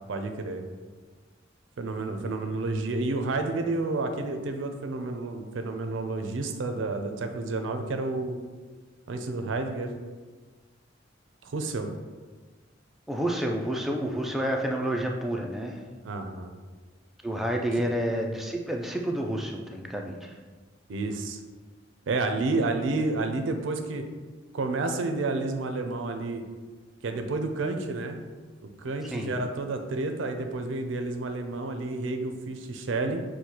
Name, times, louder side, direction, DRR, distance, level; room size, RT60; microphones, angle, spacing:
voice 1, 0.1-0.6 1.8-8.4 9.1-9.9 11.4-11.9 16.0-16.5 20.9-21.4 22.1-24.1 24.5-26.4 27.0-28.2 28.8-33.2, right 3 dB, 80° right, 6 dB, 0.4 m, -30 dB
voice 2, 13.1-15.8 17.2-20.3 29.1-29.3, right 1 dB, ahead, 1 dB, 0.3 m, -29 dB
6.3 x 2.2 x 2.8 m, 1.4 s
head